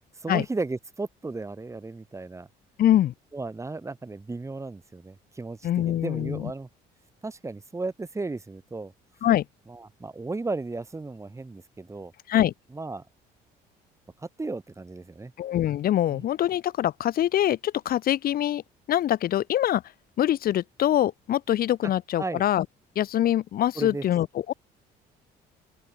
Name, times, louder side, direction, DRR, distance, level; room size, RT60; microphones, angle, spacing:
voice 1, 0.2-2.5 3.3-6.7 7.2-8.9 9.7-12.1 12.7-13.0 14.2-15.3 16.1-16.2 22.2-22.4 23.8-24.0, right 3 dB, 15° right, 5.4 m, -35 dB
voice 2, 2.8-3.1 5.6-6.5 9.2-9.4 12.3-12.5 15.4-18.6 18.9-19.8 20.2-22.7 23.0-24.5, left 12 dB, 60° left, 2.0 m, -24 dB
open air
cardioid pair, 110°, 17 cm